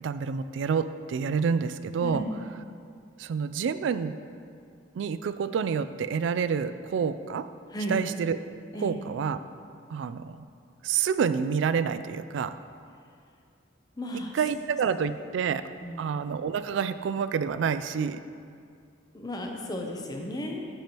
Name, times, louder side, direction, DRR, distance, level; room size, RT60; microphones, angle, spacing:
voice 1, 0.0-2.2 3.2-4.1 4.9-7.5 7.9-8.4 8.8-9.4 9.9-10.5 10.8-12.6 14.3-15.6 16.0-18.2, right 6 dB, 75° right, 12 dB, 0.3 m, -28 dB
voice 2, 7.7-8.0 8.7-9.0 14.0-14.3 15.8-16.1 19.1-20.7, equal, 20° left, 1 dB, 0.6 m, -34 dB
9.0 x 7.0 x 2.9 m, 2.3 s
head